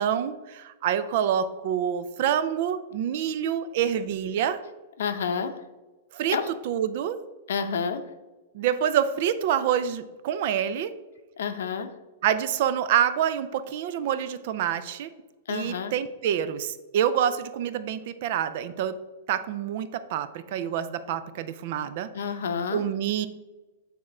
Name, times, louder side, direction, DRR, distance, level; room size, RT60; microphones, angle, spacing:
voice 1, 0.0-4.6 6.1-6.4 6.6-7.2 8.5-10.9 12.2-15.1 15.5-18.9 19.3-22.1 22.7-23.3, right 9 dB, 40° right, 12 dB, 0.4 m, -27 dB
voice 2, 5.0-5.5 6.3-6.5 7.5-8.0 11.4-11.9 15.5-15.9 22.1-22.9, left 6 dB, 75° left, 9 dB, 0.7 m, -29 dB
8.7 x 3.6 x 4.3 m, 1.2 s
supercardioid pair, 175°, 0 cm